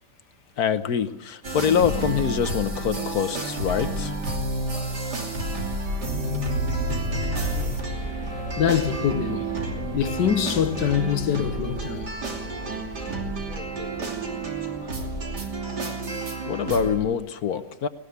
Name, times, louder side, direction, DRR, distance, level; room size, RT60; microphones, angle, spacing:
voice 1, 0.6-4.1 16.5-17.9, left 7 dB, 65° left, 1.4 m, -25 dB
sound 1, 1.4-17.0, right 2 dB, 70° right, 3.6 m, -30 dB
sound 2, 7.6-15.5, left 1 dB, 5° left, 2.8 m, -40 dB
voice 2, 8.6-9.6 9.9-12.1, left 8 dB, 85° left, 1.7 m, -24 dB
19.0 x 18.5 x 8.2 m
omnidirectional pair, 1.9 m